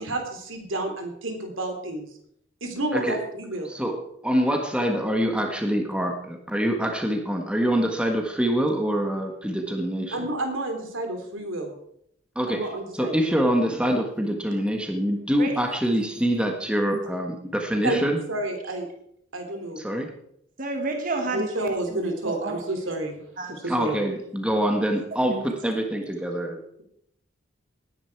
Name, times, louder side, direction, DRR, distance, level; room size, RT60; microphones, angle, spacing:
voice 1, 0.0-2.1 2.6-3.7 10.1-11.7 12.5-13.4 17.8-18.0 18.3-18.9 19.3-19.8 21.3-23.2 23.6-24.1, right 1 dB, 85° right, 4 dB, 3.3 m, -30 dB
voice 2, 3.6-10.3 12.3-18.2 19.8-20.1 23.7-26.6, equal, 5° right, 3 dB, 1.5 m, -25 dB
voice 3, 15.4-15.8 16.9-17.0 20.6-22.0 22.2-22.6 23.4-23.5 25.3-25.4, right 2 dB, 45° right, 3 dB, 1.7 m, -31 dB
18.5 x 10.0 x 4.7 m, 0.72 s
head